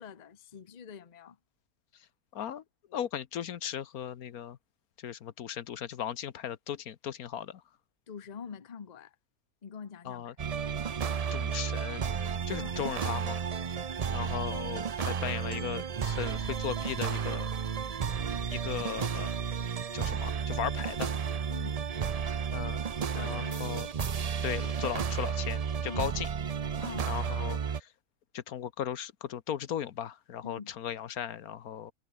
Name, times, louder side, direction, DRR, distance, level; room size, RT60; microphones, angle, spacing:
voice 1, 0.0-1.4 8.1-9.2 9.6-10.4 12.6-12.7 21.5-21.8 23.1-23.7 25.8-26.2 26.8-27.2 30.4-30.7, left 6 dB, 35° left, 0.9 m, -45 dB
voice 2, 2.3-2.6 2.9-4.6 5.0-7.6 10.0-10.3 11.3-12.0 12.5-13.4 14.1-17.5 18.5-19.3 19.9-21.1 22.5-22.8 23.1-23.9 24.4-26.3 27.1-27.9 28.3-31.9, left 9 dB, 75° left, 1.4 m, -37 dB
sound 1, 10.4-27.8, right 7 dB, 55° right, 0.4 m, -32 dB
omnidirectional pair, 1.6 m